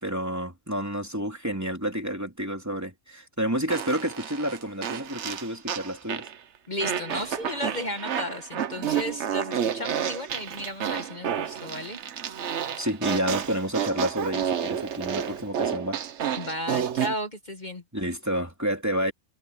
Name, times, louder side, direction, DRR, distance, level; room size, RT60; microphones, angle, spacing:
voice 1, 0.0-6.3 12.8-16.0 17.9-19.1, equal, 15° right, 3.3 m, -29 dB
Fart, 3.7-6.4 6.8-17.2, right 8 dB, 80° right, 1.2 m, -30 dB
voice 2, 6.7-12.0 16.3-17.8, left 1 dB, 40° left, 1.6 m, -34 dB
omnidirectional pair, 1.2 m